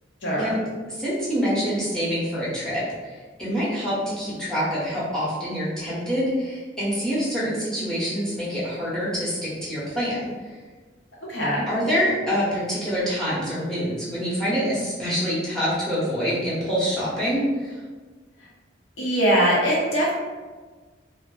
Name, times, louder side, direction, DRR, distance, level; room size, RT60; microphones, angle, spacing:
voice 1, 0.2-0.5 11.3-11.6 19.0-20.1, right 1 dB, 85° left, -6 dB, 0.9 m, -21 dB
voice 2, 0.9-10.2 11.7-17.8, equal, 5° left, -9 dB, 0.8 m, -26 dB
2.2 x 2.0 x 3.1 m, 1.4 s
head